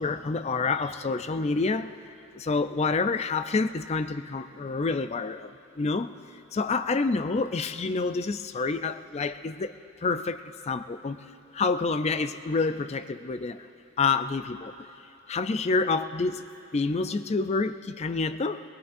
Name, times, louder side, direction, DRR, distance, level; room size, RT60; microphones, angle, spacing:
voice 1, 0.0-2.0 2.3-5.5 5.8-6.1 6.5-9.7 10.0-11.2 11.5-13.7 14.0-14.7 15.3-16.4 16.7-18.6, left 4 dB, 35° left, 10 dB, 0.4 m, -28 dB
21.5 x 20.5 x 2.6 m, 3.0 s
head